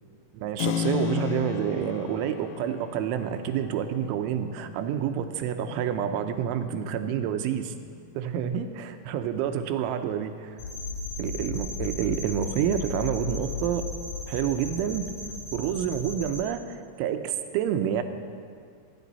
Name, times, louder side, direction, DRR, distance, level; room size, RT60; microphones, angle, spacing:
voice 1, 0.3-7.6 8.2-10.6 11.2-13.8 14.3-15.1 15.5-18.0, right 9 dB, 80° right, 8 dB, 3.2 m, -28 dB
Keyboard (musical), 0.6-9.1, left 9 dB, 80° left, 3.0 m, -36 dB
sound 1, 10.6-16.4, left 3 dB, 65° left, 2.0 m, -35 dB
27.0 x 10.5 x 4.1 m, 2.2 s
omnidirectional pair, 5.6 m